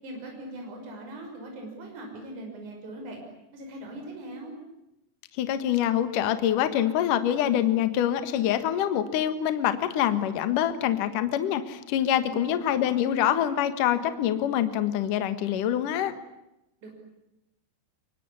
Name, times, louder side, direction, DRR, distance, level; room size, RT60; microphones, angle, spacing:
voice 1, 0.0-3.2 3.5-4.6 12.2-12.8 16.8-16.9, right 1 dB, 45° right, 1 dB, 7.1 m, -41 dB
voice 2, 5.4-16.1, left 10 dB, 60° left, 11 dB, 2.7 m, -25 dB
24.5 x 23.5 x 9.8 m, 0.89 s
omnidirectional pair, 4.9 m